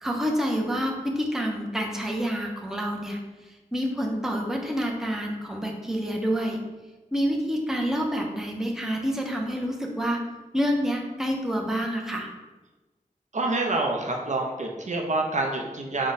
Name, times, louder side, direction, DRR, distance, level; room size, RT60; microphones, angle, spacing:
voice 1, 0.0-3.2 3.7-6.6 7.1-10.2 10.5-12.3, equal, 5° right, 0 dB, 0.5 m, -28 dB
voice 2, 13.3-16.1, right 2 dB, 55° right, 1 dB, 0.5 m, -27 dB
4.8 x 2.1 x 4.0 m, 1.2 s
wide cardioid pair, 80°, 14 cm